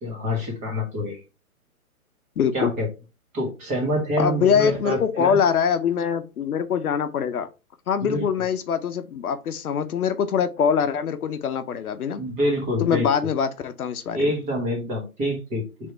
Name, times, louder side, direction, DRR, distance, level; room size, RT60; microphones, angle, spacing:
voice 1, 0.0-1.2 2.5-2.9 3.3-5.4 8.0-8.3 12.2-13.1 14.1-15.6, equal, 15° right, -1 dB, 1.4 m, -26 dB
voice 2, 2.4-2.7 4.2-7.5 7.9-12.2 12.8-14.2, left 7 dB, 75° left, 10 dB, 0.8 m, -23 dB
3.5 x 3.3 x 4.5 m, 0.30 s
hypercardioid pair, 145°, 44 cm